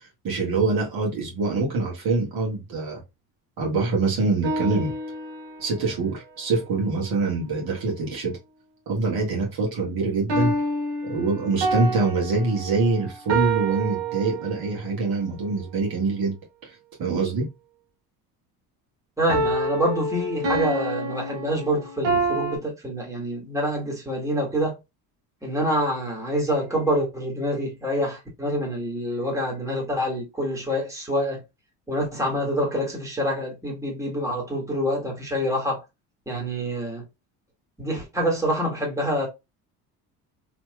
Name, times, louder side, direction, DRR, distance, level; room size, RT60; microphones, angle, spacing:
voice 1, 0.0-3.0 3.6-4.9 5.6-8.4 8.9-10.5 11.0-16.4 16.6-17.5, right 3 dB, 55° right, 1.7 m, -25 dB
sound 1, 4.4-5.8 10.3-14.8 19.3-22.6, right 2 dB, 75° right, 1.4 m, -27 dB
voice 2, 19.2-24.8 25.4-31.4 31.9-35.8 36.3-37.1 37.8-39.3, equal, 5° right, 1.8 m, -26 dB
3.4 x 2.9 x 2.2 m
supercardioid pair, 75°, 44 cm